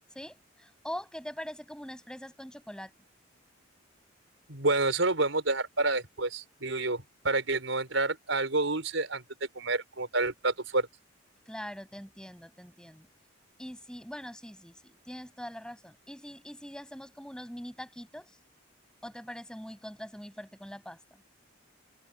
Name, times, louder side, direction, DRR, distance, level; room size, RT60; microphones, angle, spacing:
voice 1, 0.1-2.9 11.5-13.1 13.6-18.3 19.0-21.0, equal, 5° left, 7.4 m, -43 dB
voice 2, 4.5-10.9, right 2 dB, 75° right, 4.8 m, -29 dB
head